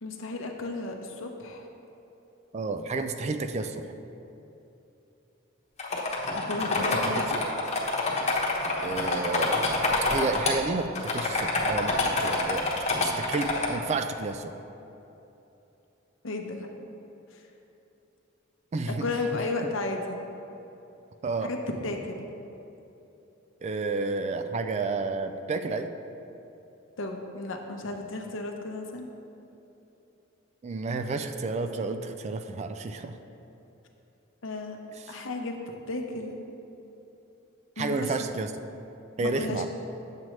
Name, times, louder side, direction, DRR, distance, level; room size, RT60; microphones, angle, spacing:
voice 1, 0.0-1.7 6.3-7.4 16.2-16.7 17.3-17.4 18.9-20.2 21.4-21.6 21.8-22.3 27.0-29.1 34.4-34.8 35.1-35.6 35.9-36.5 37.8-38.1 39.2-39.7, left 3 dB, 70° left, 3 dB, 0.8 m, -34 dB
voice 2, 2.5-3.8 6.9-7.4 8.8-9.7 10.1-11.9 12.2-12.7 13.0-14.5 18.7-19.0 21.2-21.5 23.6-25.9 30.6-33.2 37.8-38.5 39.2-39.7, right 3 dB, 35° right, 8 dB, 0.3 m, -31 dB
sound 1, 5.8-10.5 10.9-13.7, left 2 dB, 35° left, 1.0 m, -27 dB
8.7 x 7.5 x 3.1 m, 3.0 s
head